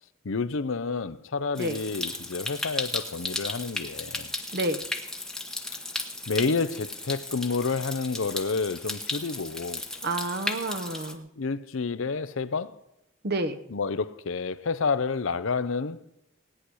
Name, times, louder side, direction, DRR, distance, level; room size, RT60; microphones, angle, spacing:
voice 1, 0.2-4.3 6.3-9.8 11.4-12.8 13.7-16.0, left 4 dB, 70° left, 0.7 m, -29 dB
Stream, 1.5-11.1, left 2 dB, 5° left, 1.0 m, -35 dB
voice 2, 4.5-4.8 10.0-11.3 13.2-13.6, right 2 dB, 50° right, 1.0 m, -29 dB
17.0 x 10.0 x 6.3 m
head